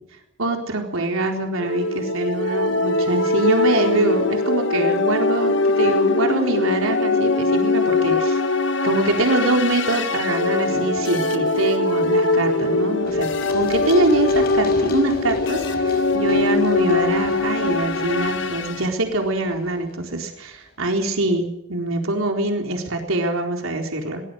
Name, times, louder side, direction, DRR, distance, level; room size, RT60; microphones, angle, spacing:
voice 1, 0.4-8.4 8.8-24.2, right 2 dB, 85° right, 3 dB, 4.2 m, -24 dB
sound 1, 1.6-18.9, left 3 dB, 60° left, 1.7 m, -21 dB
Run, 13.1-20.7, left 2 dB, 45° left, 5.5 m, -38 dB
22.5 x 19.5 x 6.7 m, 0.82 s
head